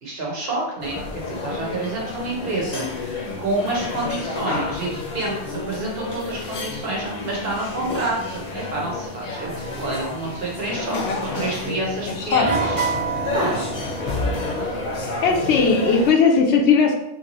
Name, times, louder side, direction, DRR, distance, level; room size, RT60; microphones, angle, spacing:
voice 1, 0.0-12.8 13.3-13.8 14.7-14.8, right 2 dB, 65° right, -3 dB, 1.1 m, -28 dB
sound 1, 0.8-16.1, left 3 dB, 50° left, 0.8 m, -30 dB
sound 2, 9.3-15.6, right 4 dB, 10° right, 0.5 m, -31 dB
voice 2, 10.9-11.5 12.1-12.5 14.6-14.7 15.0-16.9, left 5 dB, 90° left, 2 dB, 0.9 m, -19 dB
3.2 x 2.9 x 2.9 m, 0.80 s
omnidirectional pair, 1.1 m